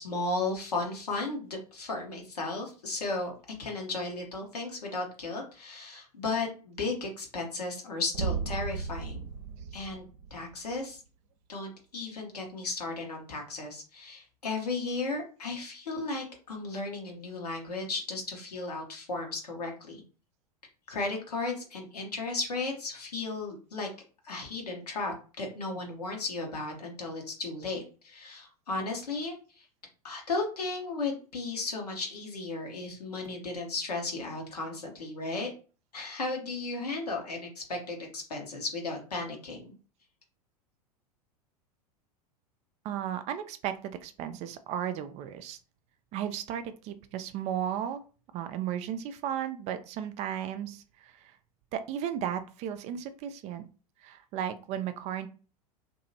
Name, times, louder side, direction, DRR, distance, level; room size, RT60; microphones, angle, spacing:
voice 1, 0.0-3.3 3.6-9.3 9.7-10.0 10.3-11.0 11.5-20.0 20.9-23.9 24.2-29.7 30.0-35.5 35.9-39.7, left 3 dB, 80° left, 1 dB, 1.0 m, -35 dB
sound 1, 8.1-10.8, right 5 dB, 75° right, 0.6 m, -35 dB
voice 2, 42.8-45.6 46.1-48.0 48.3-51.4 51.7-53.6 54.0-55.3, right 10 dB, 35° right, 10 dB, 0.4 m, -35 dB
2.8 x 2.6 x 2.7 m, 0.36 s
figure-of-eight pair, 85°, 20 cm